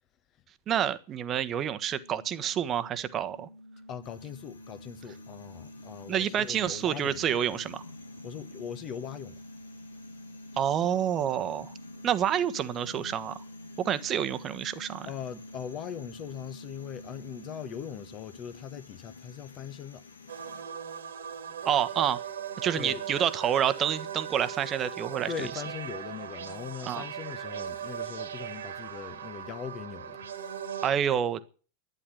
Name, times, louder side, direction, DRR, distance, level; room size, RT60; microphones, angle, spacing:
voice 1, 0.7-3.5 6.1-7.8 10.6-11.7 12.0-13.4 13.8-15.1 21.6-22.2 22.6-25.3 26.8-27.0 30.8-31.4, right 9 dB, 30° right, 1.3 m, -28 dB
sound 1, 1.4-18.9, equal, 85° right, 1.1 m, -48 dB
voice 2, 3.9-7.2 8.2-9.4 15.0-20.0 22.7-23.0 25.3-30.4, left 8 dB, 35° left, 1.3 m, -40 dB
sound 2, 4.0-20.6, left 4 dB, 75° left, 1.8 m, -52 dB
sound 3, 20.3-30.9, right 8 dB, 65° right, 2.0 m, -38 dB
12.0 x 9.9 x 9.6 m
figure-of-eight pair, 90°, 0 cm